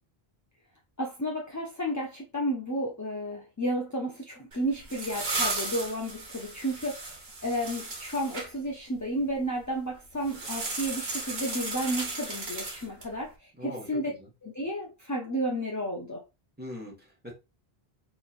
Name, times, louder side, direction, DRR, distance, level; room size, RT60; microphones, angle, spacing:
voice 1, 1.0-14.1 14.4-16.2, equal, 20° left, 0.6 m, -32 dB
sound 1, 4.5-8.5 10.2-13.2, right 3 dB, 75° right, 1.4 m, -35 dB
voice 2, 13.6-14.3 16.6-17.3, left 1 dB, 10° right, 1.4 m, -41 dB
4.3 x 3.1 x 2.5 m
omnidirectional pair, 1.0 m